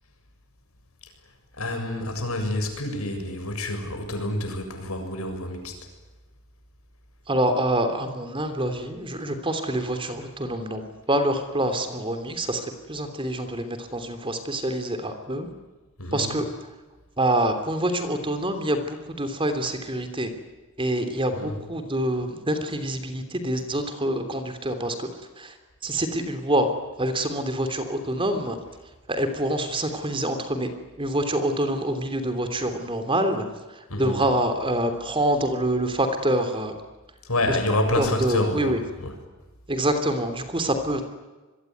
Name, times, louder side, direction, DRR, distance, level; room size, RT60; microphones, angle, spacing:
voice 1, 1.6-5.8 16.0-16.4 21.3-21.6 33.9-34.2 37.2-39.1, left 1 dB, 80° left, 5 dB, 7.2 m, -28 dB
voice 2, 7.3-10.8 11.1-15.5 16.1-16.4 17.2-20.3 20.8-25.1 25.4-25.5 25.8-26.7 27.0-28.6 29.1-30.7 31.0-33.5 33.7-36.7 38.0-38.8 39.7-41.0, right 1 dB, 25° right, 8 dB, 3.2 m, -26 dB
27.0 x 22.0 x 9.5 m, 1.2 s
head